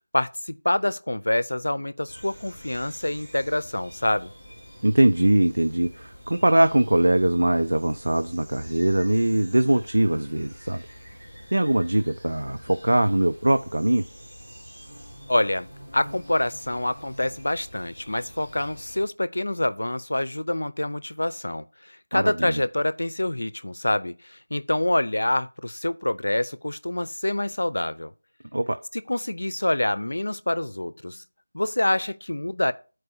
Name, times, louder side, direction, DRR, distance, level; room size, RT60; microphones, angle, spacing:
voice 1, 0.1-4.3 15.3-15.7 15.9-28.1 28.9-31.2 31.5-32.7, left 1 dB, 75° left, 0.6 m, -26 dB
sound 1, 2.1-19.0, equal, 5° right, 2.3 m, -46 dB
voice 2, 4.8-10.8 11.5-14.0 22.1-22.6 28.5-28.8, right 1 dB, 85° right, 0.5 m, -21 dB
9.7 x 4.7 x 4.5 m
figure-of-eight pair, 180°, 0 cm